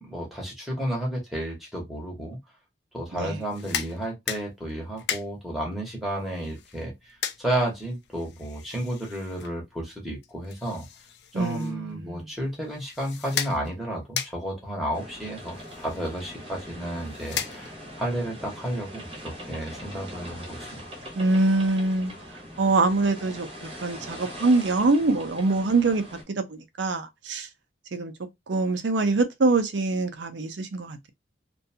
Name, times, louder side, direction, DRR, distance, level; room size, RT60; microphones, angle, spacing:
voice 1, 0.0-2.4 2.9-10.9 11.3-20.8, right 1 dB, ahead, 0.9 m, -32 dB
sound 1, 3.4-18.0, left 9 dB, 65° left, 0.4 m, -38 dB
voice 2, 11.3-12.3 21.1-22.1 22.6-26.0 26.4-27.5 27.9-28.1 28.5-31.1, right 3 dB, 75° right, 0.6 m, -24 dB
sound 2, 14.9-26.2, equal, 30° right, 0.9 m, -42 dB
2.6 x 2.3 x 2.7 m
head